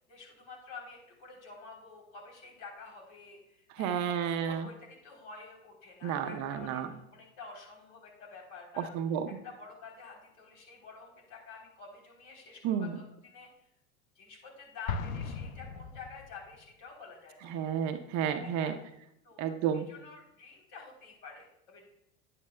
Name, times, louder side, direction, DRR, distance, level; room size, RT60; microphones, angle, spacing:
voice 1, 0.0-6.8 7.1-9.0 9.4-13.7 14.2-17.5 18.4-18.8 19.2-21.9, left 4 dB, 50° left, 0 dB, 3.4 m, -49 dB
voice 2, 3.7-4.7 6.0-6.9 8.8-9.3 12.6-13.0 17.5-18.7 19.4-19.9, right 8 dB, 45° right, 8 dB, 0.7 m, -31 dB
Explosion, 14.9-16.6, left 5 dB, 80° left, 0.7 m, -37 dB
9.9 x 9.2 x 2.2 m, 0.80 s
hypercardioid pair, 90°, 41 cm